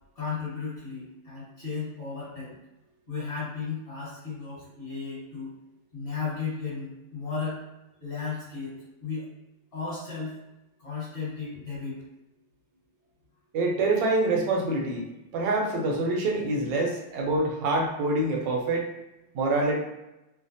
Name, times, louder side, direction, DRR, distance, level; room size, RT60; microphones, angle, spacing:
voice 1, 0.1-2.6 3.1-5.5 5.9-7.6 8.0-9.3 9.7-10.3 10.8-12.0, left 5 dB, 35° left, -10 dB, 1.4 m, -34 dB
voice 2, 13.5-15.1 15.3-18.9 19.3-19.8, right 2 dB, 75° right, 0 dB, 1.3 m, -26 dB
3.2 x 2.0 x 2.6 m, 0.94 s
omnidirectional pair, 2.1 m